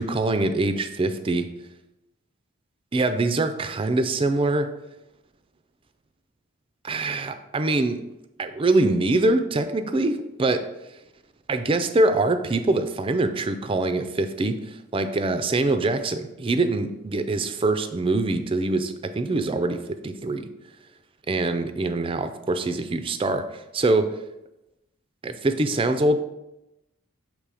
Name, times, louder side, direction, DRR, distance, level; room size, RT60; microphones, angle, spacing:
voice 1, 0.0-1.5 2.9-4.7 6.8-8.0 8.4-10.7 11.5-20.5 21.3-24.2 25.2-26.2, right 2 dB, 25° right, 9 dB, 0.4 m, -24 dB
6.7 x 3.2 x 4.8 m, 0.93 s
head